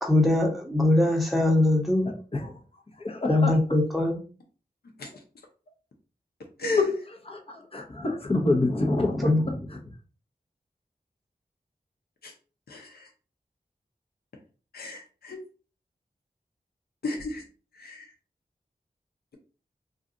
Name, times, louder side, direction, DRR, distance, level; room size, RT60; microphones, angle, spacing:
voice 1, 0.0-2.1 3.3-4.2 9.2-9.4, left 2 dB, ahead, 0 dB, 0.9 m, -22 dB
voice 2, 2.0-2.6 3.0-3.5 6.8-6.9 7.3-9.8, left 2 dB, 35° left, 1 dB, 0.8 m, -27 dB
voice 3, 6.6-6.9 12.2-12.3 12.7-12.9 14.7-15.4 17.0-17.4 17.8-18.0, left 4 dB, 80° left, 2 dB, 0.6 m, -31 dB
2.5 x 2.3 x 3.7 m, 0.37 s
wide cardioid pair, 50°, 16 cm